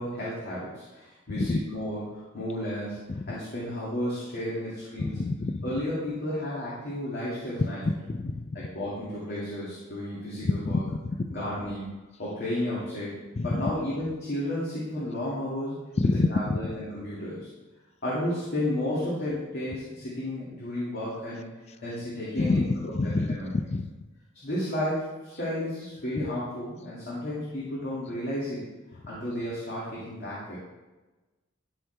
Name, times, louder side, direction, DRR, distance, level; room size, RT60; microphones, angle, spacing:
voice 1, 0.0-5.2 5.6-7.8 8.5-10.8 11.3-11.9 12.2-13.1 13.4-15.8 16.3-17.5 18.0-21.5 21.8-23.5 24.3-28.6 29.1-30.6, left 1 dB, 55° left, -8 dB, 2.3 m, -32 dB
voice 2, 5.0-5.6 7.6-8.5 10.4-11.3 13.4-13.7 16.0-16.7 22.4-22.6 22.9-23.9, left 3 dB, 35° left, 12 dB, 0.4 m, -27 dB
13.5 x 4.6 x 3.4 m, 1.1 s
head